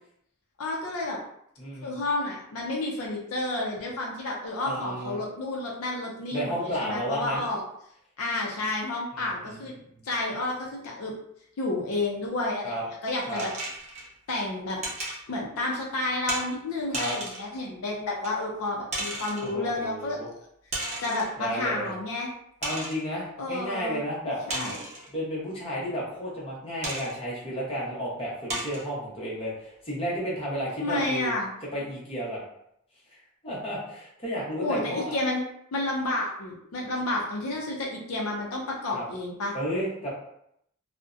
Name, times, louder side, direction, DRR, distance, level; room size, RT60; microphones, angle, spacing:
voice 1, 0.6-1.2 1.8-7.6 8.2-9.7 10.0-11.1 11.6-13.5 14.3-14.8 15.3-20.2 21.0-22.3 23.4-24.0 24.5-24.8 30.8-31.5 34.6-35.4 35.7-39.5, left 2 dB, 75° left, -2 dB, 0.5 m, -30 dB
voice 2, 1.6-2.0 4.6-5.2 6.3-7.4 9.1-10.0 12.6-12.8 13.3-13.5 16.9-17.2 19.4-20.3 21.4-21.9 22.6-24.4 25.1-31.3 31.7-32.4 33.4-35.2 38.9-39.0 39.5-40.1, equal, 25° left, -6 dB, 0.8 m, -32 dB
sound 1, 13.4-14.1 14.8-15.2 16.3-16.5 16.9-17.5 18.2-18.3 18.9-19.5 20.7-21.3 21.9-22.0 22.6-23.0 24.5-25.1 26.8-27.1 27.8-27.9 28.5-28.9, right 1 dB, 30° right, 0.6 m, -33 dB
2.5 x 2.1 x 2.4 m, 0.74 s
head